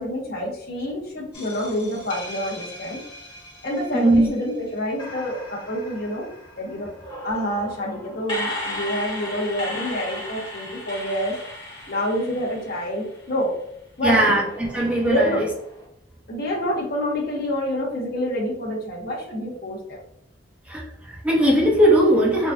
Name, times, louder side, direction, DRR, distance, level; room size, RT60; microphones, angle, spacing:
voice 1, 0.0-3.0 3.6-6.3 6.6-6.9 7.2-11.4 11.9-13.5 14.0-14.2 15.0-15.4 16.3-20.0, equal, 55° left, -2 dB, 1.1 m, -27 dB
sound 1, 1.3-4.5 5.0-13.4 14.4-15.9, left 1 dB, 25° left, 1.3 m, -36 dB
voice 2, 3.9-4.3 14.0-15.5 20.7-22.5, right 1 dB, 5° right, -4 dB, 0.6 m, -19 dB
4.0 x 2.4 x 2.3 m, 0.75 s
head